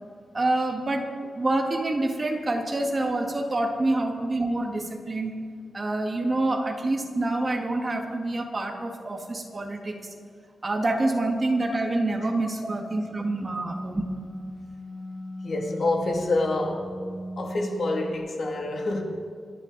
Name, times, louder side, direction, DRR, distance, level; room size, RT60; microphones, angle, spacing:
voice 1, 0.3-5.4 5.7-10.0 10.6-14.0, right 2 dB, 25° right, 3 dB, 1.6 m, -27 dB
voice 2, 2.7-3.1 11.9-12.0 15.4-16.9 17.4-19.0, left 2 dB, 50° left, 1 dB, 2.3 m, -27 dB
sound 1, 12.7-18.2, equal, 20° left, 2.5 m, -38 dB
26.5 x 11.0 x 4.0 m, 2.1 s
wide cardioid pair, 165°, 0 cm